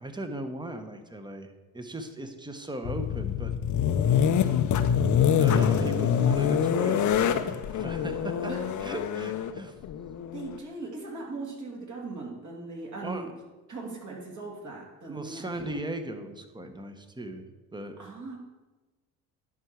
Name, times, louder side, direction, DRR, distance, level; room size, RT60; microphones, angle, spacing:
voice 1, 0.0-3.5 5.4-8.5 8.8-9.8 13.0-13.3 15.1-17.9, right 1 dB, 10° right, 8 dB, 1.1 m, -37 dB
sound 1, 2.8-10.6, left 8 dB, 45° left, 0.7 m, -25 dB
voice 2, 5.7-6.5 8.5-8.7 10.3-13.3 13.7-15.8 18.0-18.4, right 3 dB, 40° right, -2 dB, 3.0 m, -39 dB
11.0 x 4.7 x 4.7 m, 1.2 s
hypercardioid pair, 65°, 43 cm